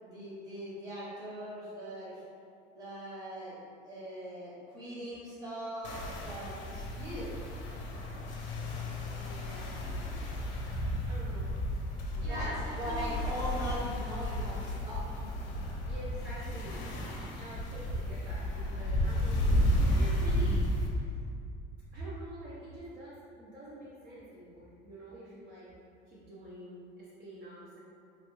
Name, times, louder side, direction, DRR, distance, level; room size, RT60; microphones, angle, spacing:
voice 1, 0.0-2.2 2.7-3.6 3.8-7.3 12.1-15.4, equal, 20° right, -9 dB, 0.8 m, -40 dB
sound 1, 5.8-20.9, equal, 70° left, 0.6 m, -33 dB
voice 2, 9.1-9.7 10.1-10.7 11.0-13.2 15.8-16.8 17.3-21.2 21.9-25.7 26.1-27.8, right 1 dB, 50° right, -8 dB, 0.6 m, -46 dB
3.1 x 2.2 x 3.0 m, 2.4 s
cardioid pair, 170°, 20 cm